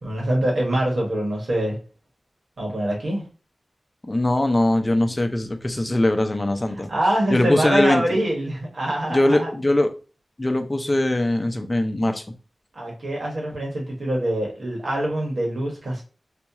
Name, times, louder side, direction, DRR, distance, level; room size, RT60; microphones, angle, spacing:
voice 1, 0.0-1.8 2.6-3.2 6.9-9.5 12.7-16.0, right 1 dB, 75° right, -1 dB, 1.4 m, -24 dB
voice 2, 4.1-6.9 7.3-8.2 9.1-9.9 10.4-12.2, left 1 dB, 25° left, 6 dB, 0.5 m, -21 dB
4.2 x 2.3 x 2.9 m, 0.35 s
wide cardioid pair, 95°, 0 cm